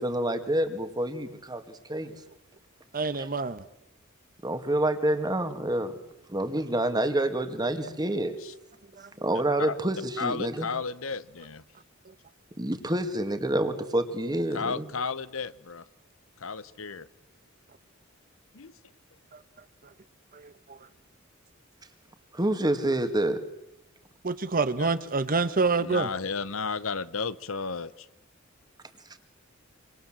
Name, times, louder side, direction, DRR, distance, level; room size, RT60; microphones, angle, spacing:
voice 1, 0.0-2.1 3.2-3.3 4.4-6.0 6.3-8.4 9.2-10.7 12.6-14.9 22.3-23.4, right 1 dB, 20° right, 9 dB, 2.2 m, -28 dB
voice 2, 2.9-3.6 9.0-9.1 20.3-20.8 24.2-26.1, right 4 dB, 45° right, 13 dB, 1.1 m, -27 dB
voice 3, 10.2-11.6 14.5-15.8 16.4-17.1 18.5-18.7 24.8-24.9 25.8-27.9, left 5 dB, 80° left, 16 dB, 1.1 m, -33 dB
26.5 x 25.5 x 7.6 m, 0.89 s
head